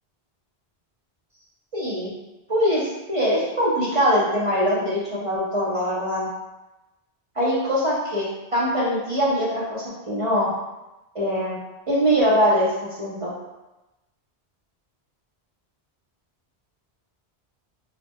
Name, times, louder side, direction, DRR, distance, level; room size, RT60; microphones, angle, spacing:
voice 1, 1.7-2.1 2.5-6.3 7.4-10.5 11.1-11.6 11.9-12.7 13.0-13.3, equal, 40° right, -7 dB, 0.5 m, -22 dB
2.4 x 2.0 x 3.4 m, 1.0 s
omnidirectional pair, 1.1 m